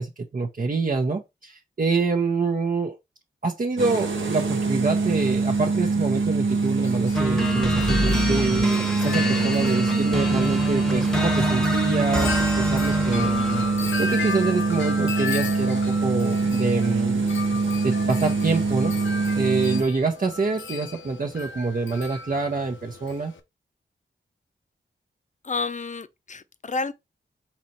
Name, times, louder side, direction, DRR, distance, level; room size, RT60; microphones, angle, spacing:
voice 1, 0.0-3.0 3.4-13.4 14.0-17.4 17.8-19.0 19.3-23.3, right 3 dB, 45° right, 0.8 m, -26 dB
sound 1, 3.8-19.8, right 4 dB, 90° right, 1.0 m, -24 dB
Wind chime, 6.5-23.4, left 4 dB, 80° left, 0.7 m, -35 dB
sound 2, 7.1-13.9, left 1 dB, 5° left, 1.1 m, -27 dB
voice 2, 25.4-26.9, left 4 dB, 40° left, 0.6 m, -30 dB
4.0 x 3.0 x 4.3 m
cardioid pair, 55°, 20 cm